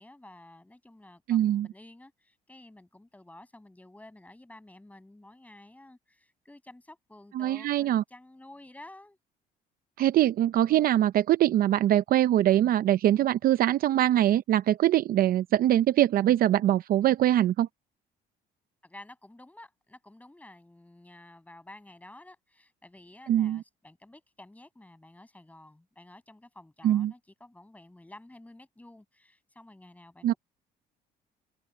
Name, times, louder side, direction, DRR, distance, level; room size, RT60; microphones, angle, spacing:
voice 1, 0.0-9.2 18.8-30.4, left 1 dB, 10° left, 6.8 m, -51 dB
voice 2, 1.3-1.7 7.3-8.0 10.0-17.7 23.3-23.6 26.8-27.1 30.2-30.3, right 12 dB, 60° right, 0.6 m, -23 dB
open air
cardioid pair, 110°, 17 cm